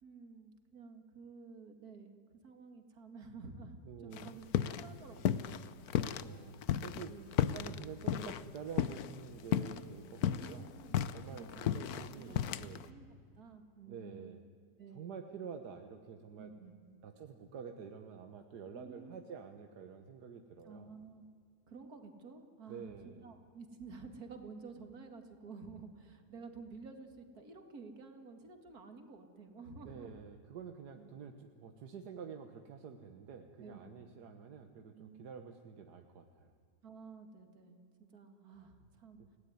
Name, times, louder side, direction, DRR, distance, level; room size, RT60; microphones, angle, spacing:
voice 1, 0.0-4.5 4.7-5.8 7.1-7.3 10.2-11.9 12.1-13.1 13.4-14.4 14.8-15.1 16.4-17.0 18.7-19.2 20.6-21.3 21.7-30.2 30.9-31.1 33.6-34.0 34.9-35.3 36.8-39.2, right 4 dB, 65° right, 6 dB, 2.7 m, -52 dB
voice 2, 3.8-4.4 6.1-7.2 7.5-10.7 11.1-12.8 13.9-14.4 14.9-16.5 17.0-20.9 22.7-23.3 29.8-36.5 39.2-39.3, right 6 dB, 80° right, 6 dB, 1.7 m, -48 dB
sound 1, 4.1-4.9 5.2-6.3 6.6-9.2 9.5-9.8 10.1-12.9, left 10 dB, 70° left, 1.3 m, -33 dB
29.0 x 18.0 x 9.6 m, 2.2 s
omnidirectional pair, 1.7 m